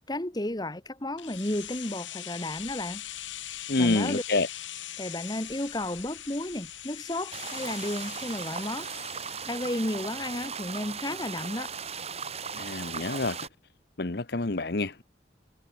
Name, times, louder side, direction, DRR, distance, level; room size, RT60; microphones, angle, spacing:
voice 1, 0.1-3.0 3.8-4.2 5.0-8.9 9.4-11.7, left 1 dB, 20° left, 1.4 m, -33 dB
sound 1, 1.2-11.0 11.3-11.4, left 12 dB, 80° left, 5.4 m, -42 dB
voice 2, 3.7-4.5 12.5-13.4 14.0-15.0, left 2 dB, 55° left, 1.1 m, -27 dB
sound 2, 7.3-13.5, right 6 dB, 35° right, 5.1 m, -37 dB
head